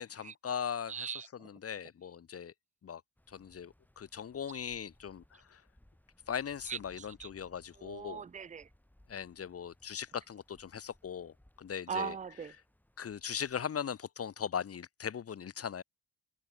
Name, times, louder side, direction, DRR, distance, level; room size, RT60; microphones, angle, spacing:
voice 1, 0.0-1.1 1.4-2.5 2.8-3.0 3.3-5.6 6.3-8.2 9.1-12.2 13.0-15.8, left 8 dB, 35° left, 0.8 m, -39 dB
voice 2, 0.9-1.5 6.7-7.3 7.8-8.7 11.9-12.5, right 7 dB, 20° right, 0.5 m, -40 dB
sound 1, 3.2-13.6, left 1 dB, 5° left, 5.1 m, -65 dB
wide cardioid pair, 175°, 43 cm